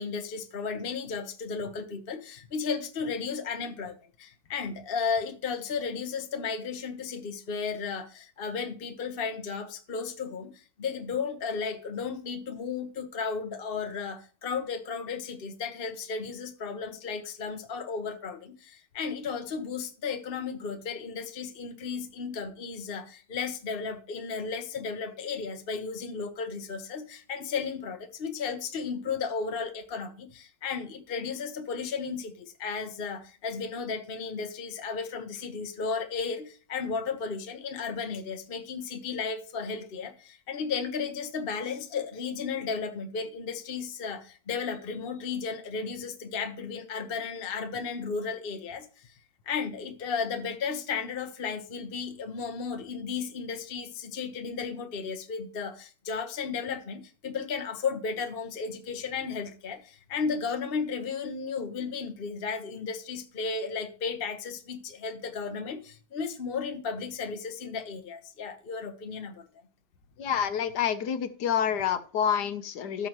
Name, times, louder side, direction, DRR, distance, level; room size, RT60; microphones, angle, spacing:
voice 1, 0.0-48.9 49.5-69.4, left 5 dB, 40° left, 1.0 m, -34 dB
voice 2, 70.2-73.1, left 8 dB, 65° left, 1.4 m, -28 dB
13.5 x 6.5 x 3.0 m
omnidirectional pair, 2.0 m